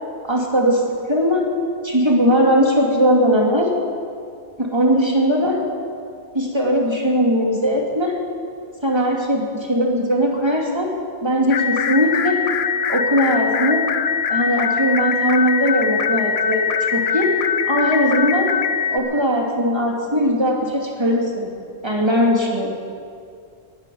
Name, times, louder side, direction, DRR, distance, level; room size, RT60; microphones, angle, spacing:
voice 1, 0.3-0.8 1.1-1.5 1.8-3.7 4.6-5.6 6.3-8.2 8.8-10.9 11.2-12.4 12.9-13.9 14.3-16.6 16.9-17.3 17.7-18.5 18.9-21.5 21.8-22.7, equal, 25° right, -1 dB, 2.5 m, -19 dB
sound 1, 11.5-19.0, left 7 dB, 70° left, 1.0 m, -22 dB
19.5 x 10.0 x 7.1 m, 2.3 s
omnidirectional pair, 1.1 m